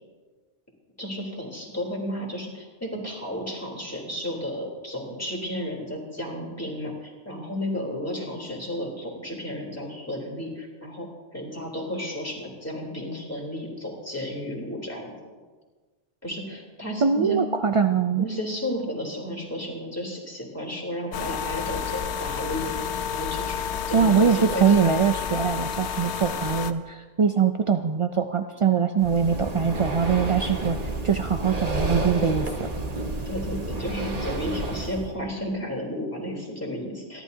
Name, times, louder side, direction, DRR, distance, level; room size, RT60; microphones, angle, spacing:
voice 1, 1.0-11.1 11.3-15.1 16.2-17.4 18.2-24.9 33.2-37.2, equal, 10° left, -3 dB, 3.5 m, -33 dB
voice 2, 17.0-18.3 23.9-30.8 31.0-32.7, right 6 dB, 50° right, 6 dB, 0.3 m, -22 dB
sound 1, 21.1-26.7, left 7 dB, 75° left, 1.0 m, -30 dB
Breathing, 29.0-35.1, right 2 dB, 35° right, 1.2 m, -30 dB
28.0 x 12.0 x 2.8 m, 1.4 s
omnidirectional pair, 1.2 m